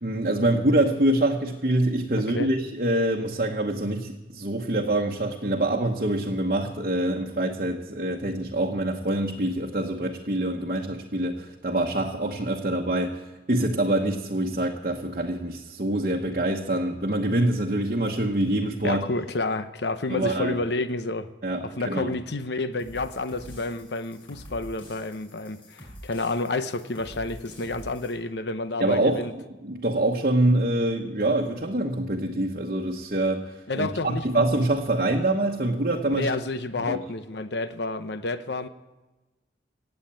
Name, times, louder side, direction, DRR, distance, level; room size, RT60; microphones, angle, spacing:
voice 1, 0.0-13.2 13.5-19.0 20.1-20.6 21.4-22.1 28.8-29.2 29.6-36.3 36.9-37.0, right 1 dB, 50° right, 0 dB, 1.1 m, -25 dB
voice 2, 18.8-21.3 21.6-29.3 33.7-34.4 36.1-38.7, left 2 dB, 70° left, 11 dB, 0.9 m, -30 dB
sound 1, 22.8-28.1, equal, 25° left, 7.4 m, -45 dB
17.5 x 8.2 x 8.9 m, 1.1 s
head